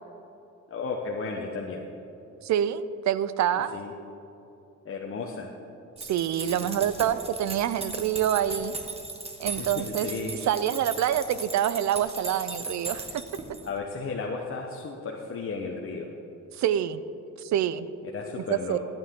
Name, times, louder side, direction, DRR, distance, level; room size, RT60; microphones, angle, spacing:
voice 1, 0.7-1.9 3.7-3.9 4.8-5.5 6.5-6.7 9.6-10.4 13.6-16.1 18.0-18.8, left 4 dB, 45° left, 0 dB, 1.1 m, -34 dB
voice 2, 2.4-3.7 6.0-8.7 9.4-10.1 10.4-13.2 16.5-17.0 17.4-17.9 18.3-18.8, right 10 dB, 65° right, 15 dB, 0.6 m, -26 dB
sound 1, 6.0-13.7, right 3 dB, 20° right, 1.4 m, -38 dB
14.5 x 8.9 x 3.7 m, 2.9 s
cardioid pair, 90°, 30 cm